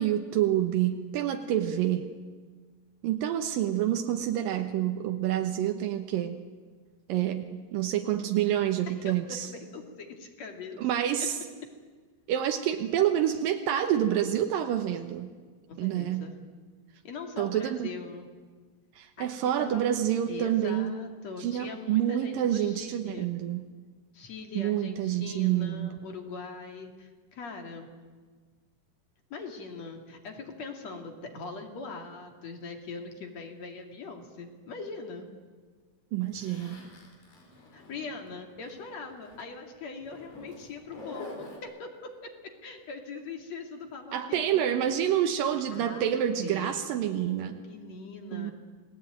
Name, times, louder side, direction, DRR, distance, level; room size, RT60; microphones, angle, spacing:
voice 1, 0.0-2.1 3.0-6.4 7.1-9.5 10.8-11.4 12.3-15.3 15.8-16.3 17.4-17.9 19.0-21.0 21.4-23.7 24.5-25.9 36.1-36.8 44.1-47.6 48.3-48.5, right 11 dB, 85° right, 5 dB, 2.7 m, -28 dB
voice 2, 8.9-10.8 11.2-11.3 11.6-11.7 15.7-16.4 17.0-18.3 19.2-19.3 19.6-20.0 20.3-23.3 24.1-27.9 29.3-35.3 37.7-45.0 45.7-46.1 46.4-48.5, left 4 dB, 50° left, 3 dB, 3.5 m, -42 dB
Zipper (clothing), 36.3-38.8 39.1-39.4 40.0-41.6, left 3 dB, 75° left, 6.3 m, -46 dB
28.5 x 19.5 x 9.2 m, 1.5 s
omnidirectional pair, 4.0 m